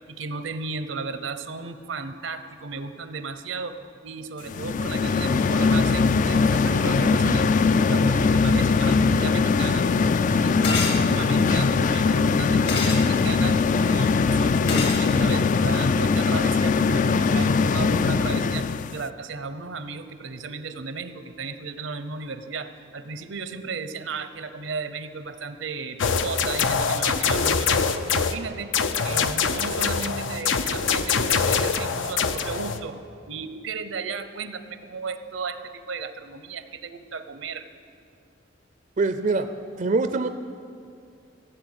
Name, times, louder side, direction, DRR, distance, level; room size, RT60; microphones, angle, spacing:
voice 1, 0.1-3.8 4.0-9.9 10.2-33.0 33.3-37.7, right 4 dB, 80° right, 10 dB, 0.8 m, -35 dB
sound 1, 4.5-19.0, left 4 dB, 40° left, 0.3 m, -21 dB
sound 2, 10.6-11.0 12.7-13.0 14.7-15.0, left 3 dB, 60° left, 1.9 m, -26 dB
sound 3, 26.0-28.4 28.7-32.8, left 5 dB, 75° left, 0.6 m, -24 dB
voice 2, 39.0-39.5 39.8-40.3, right 3 dB, 40° right, 8 dB, 0.5 m, -23 dB
15.5 x 8.0 x 8.0 m, 2.4 s
head